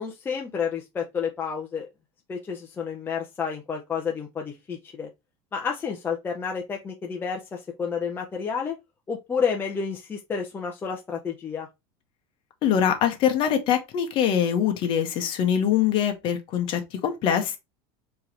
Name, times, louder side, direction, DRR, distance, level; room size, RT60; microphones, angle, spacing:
voice 1, 0.0-1.9 2.3-5.1 5.5-8.7 9.1-11.7, left 6 dB, 15° left, 0.6 m, -30 dB
voice 2, 12.6-17.6, left 9 dB, 40° left, 1.2 m, -23 dB
4.5 x 3.0 x 3.2 m
supercardioid pair, 160°, 13 cm